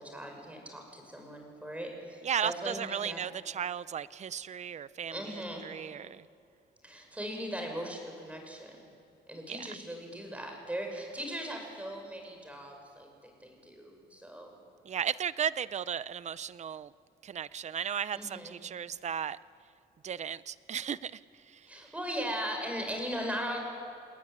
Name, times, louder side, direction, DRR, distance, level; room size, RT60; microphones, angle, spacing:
voice 1, 0.0-3.2 5.1-5.6 6.8-8.9 9.3-14.6 18.1-18.6 21.7-23.6, equal, 10° right, 2 dB, 5.9 m, -39 dB
voice 2, 2.2-6.3 9.5-9.7 14.8-16.9 17.2-19.4 20.0-21.9, right 8 dB, 40° right, 17 dB, 0.6 m, -35 dB
28.0 x 20.0 x 9.9 m, 2.4 s
cardioid pair, 135°, 18 cm